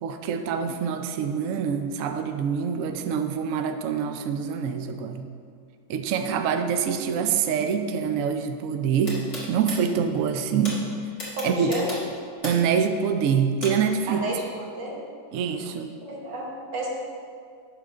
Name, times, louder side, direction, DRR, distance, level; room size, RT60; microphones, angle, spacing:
voice 1, 0.0-5.3 5.9-10.9 11.4-11.7 12.4-14.2 15.3-15.9, right 7 dB, 65° right, 6 dB, 0.8 m, -25 dB
sound 1, 9.1-9.8 10.6-10.7 11.2-12.7 13.6-13.7, left 2 dB, 55° left, 2.4 m, -34 dB
voice 2, 11.4-12.0 14.1-15.0 16.0-16.9, right 1 dB, 85° right, -2 dB, 2.0 m, -31 dB
10.5 x 3.7 x 6.5 m, 2.1 s
omnidirectional pair, 1.9 m